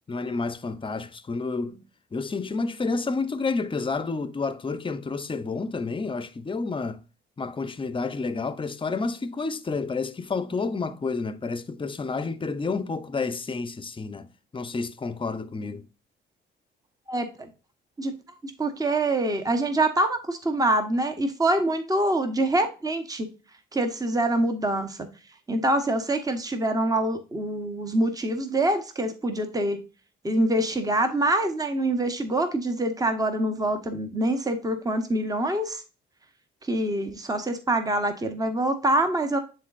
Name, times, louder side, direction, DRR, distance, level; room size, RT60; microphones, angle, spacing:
voice 1, 0.1-1.8 2.1-7.0 7.4-14.3 14.5-15.8, left 4 dB, 25° left, 0.8 m, -30 dB
voice 2, 17.1-17.5 18.0-18.1 18.6-23.3 23.7-25.0 25.5-29.8 30.2-35.8 36.7-39.4, right 1 dB, 20° right, 1.1 m, -25 dB
9.7 x 4.0 x 2.5 m
cardioid pair, 90°, 20 cm